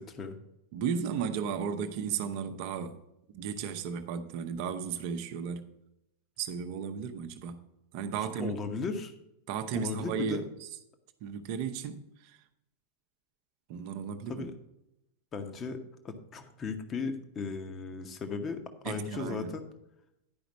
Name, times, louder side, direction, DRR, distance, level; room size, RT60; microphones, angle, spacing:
voice 1, 0.7-3.0 3.3-5.7 6.4-7.6 7.9-8.6 9.5-10.7 11.2-12.4 13.7-14.5 18.8-19.5, right 7 dB, 45° right, 0.8 m, -35 dB
voice 2, 8.4-9.1 9.7-10.4 14.3-14.5 15.3-15.8 16.0-19.7, left 4 dB, 25° left, 1.0 m, -36 dB
10.5 x 5.1 x 5.2 m
figure-of-eight pair, 90°, 0 cm